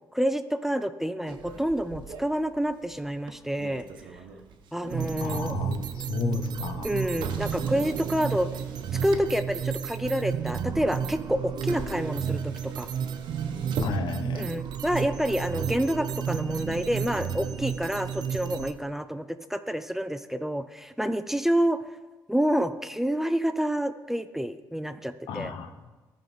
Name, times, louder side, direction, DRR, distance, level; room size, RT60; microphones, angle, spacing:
voice 1, 0.1-3.8 4.7-5.6 6.8-8.5 9.0-12.9 14.3-21.8 22.3-25.5, equal, 5° right, 10 dB, 0.3 m, -28 dB
Motor vehicle (road), 1.3-18.4, right 5 dB, 85° right, 0.9 m, -44 dB
sound 1, 4.9-18.7, right 7 dB, 65° right, 0.6 m, -32 dB
voice 2, 5.2-6.9 13.8-14.5 25.3-25.7, left 6 dB, 85° left, 7 dB, 0.8 m, -32 dB
14.5 x 5.1 x 4.2 m, 1.2 s
cardioid pair, 130°, 8 cm